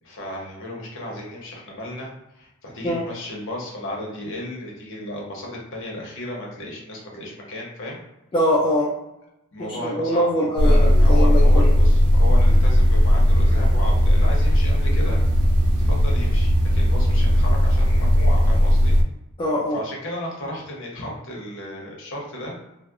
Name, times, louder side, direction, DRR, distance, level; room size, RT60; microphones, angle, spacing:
voice 1, 0.0-8.0 9.5-10.3 10.6-15.2 15.8-19.0 19.7-22.6, left 1 dB, 55° left, -2 dB, 0.8 m, -34 dB
voice 2, 8.3-8.9 9.6-11.7 19.4-19.8, equal, 20° left, -5 dB, 0.3 m, -23 dB
sound 1, 10.6-19.0, equal, 80° right, 0.4 m, -17 dB
2.7 x 2.0 x 2.3 m, 0.91 s
head